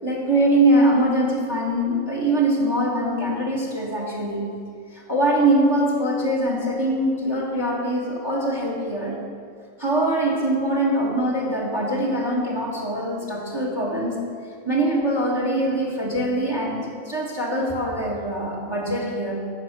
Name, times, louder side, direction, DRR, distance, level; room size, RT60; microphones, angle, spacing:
voice 1, 0.0-4.5 4.9-9.2 9.8-14.2 14.7-19.4, right 1 dB, 20° right, -2 dB, 1.7 m, -23 dB
11.5 x 8.1 x 6.1 m, 2.2 s
omnidirectional pair, 1.4 m